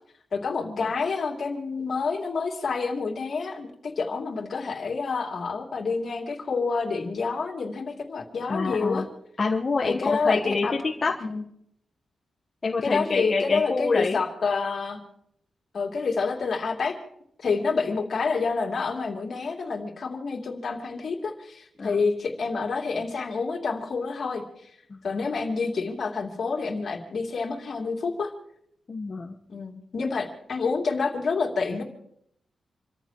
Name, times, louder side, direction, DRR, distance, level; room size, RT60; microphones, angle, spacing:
voice 1, 0.3-3.7 4.0-9.1 9.8-10.8 11.2-11.4 12.8-15.0 15.7-16.9 17.4-24.4 25.0-28.3 29.5-31.8, left 4 dB, 55° left, 2 dB, 2.9 m, -28 dB
voice 2, 8.5-9.1 9.4-11.1 12.6-14.2 21.8-22.0 24.9-25.0 28.9-29.3, left 4 dB, 35° left, 0 dB, 1.3 m, -27 dB
28.0 x 14.5 x 3.1 m, 0.73 s
wide cardioid pair, 125°, 0 cm